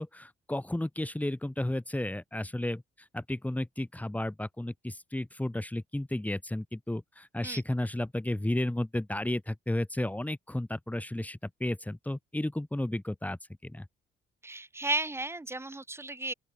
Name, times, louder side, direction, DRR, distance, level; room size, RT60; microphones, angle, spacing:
voice 1, 0.0-13.9, left 1 dB, 5° left, 2.6 m, -33 dB
voice 2, 14.4-16.3, right 2 dB, 10° right, 1.7 m, -34 dB
open air
cardioid pair, 90°, 20 cm